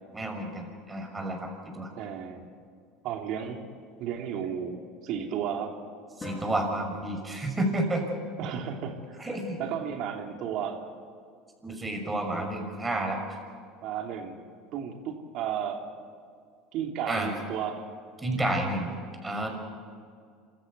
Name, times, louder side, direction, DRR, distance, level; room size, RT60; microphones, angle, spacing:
voice 1, 0.1-1.5 1.7-1.9 6.2-8.0 9.2-9.6 11.6-13.4 17.1-17.3 18.2-18.9 19.2-19.5, right 1 dB, 15° right, 3 dB, 6.0 m, -30 dB
voice 2, 2.0-2.5 3.0-3.6 4.0-5.7 8.4-9.3 9.6-10.8 13.8-14.4 14.7-15.9 16.7-17.9, right 8 dB, 60° right, 3 dB, 3.1 m, -33 dB
Drum, 6.2-8.2, left 2 dB, 25° left, 6.9 m, -45 dB
28.0 x 14.0 x 8.3 m, 2.2 s
hypercardioid pair, 85°, 0 cm